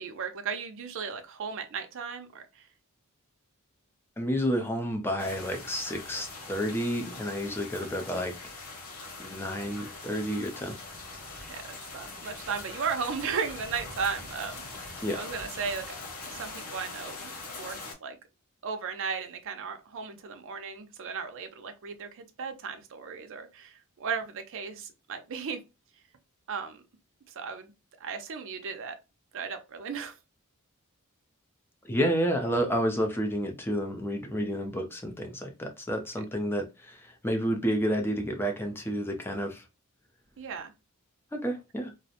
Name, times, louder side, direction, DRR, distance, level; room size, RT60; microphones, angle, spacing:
voice 1, 0.0-2.7 11.4-15.9 16.2-18.2 18.6-25.6 26.5-26.8 27.3-27.7 28.0-29.0 29.3-30.2 40.4-40.7, right 6 dB, 60° right, 0.5 m, -36 dB
voice 2, 4.2-8.3 9.2-10.8 15.0-15.2 31.8-39.6 41.3-41.9, equal, 10° left, 0.5 m, -30 dB
sound 1, 5.2-17.9, left 3 dB, 75° left, 0.9 m, -42 dB
2.4 x 2.0 x 2.7 m
head